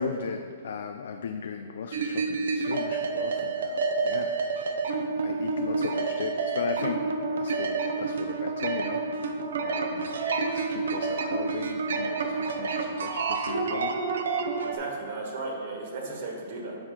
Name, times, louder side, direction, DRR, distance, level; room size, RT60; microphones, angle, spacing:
voice 1, 0.0-4.4 5.2-7.0 7.3-9.0 9.6-10.1 10.5-14.0, left 6 dB, 65° left, 6 dB, 0.4 m, -37 dB
sound 1, 1.9-14.8, right 4 dB, 80° right, 0.8 m, -29 dB
voice 2, 14.6-16.8, right 3 dB, 50° right, -1 dB, 1.6 m, -35 dB
7.2 x 4.8 x 5.8 m, 2.2 s
hypercardioid pair, 165°, 0 cm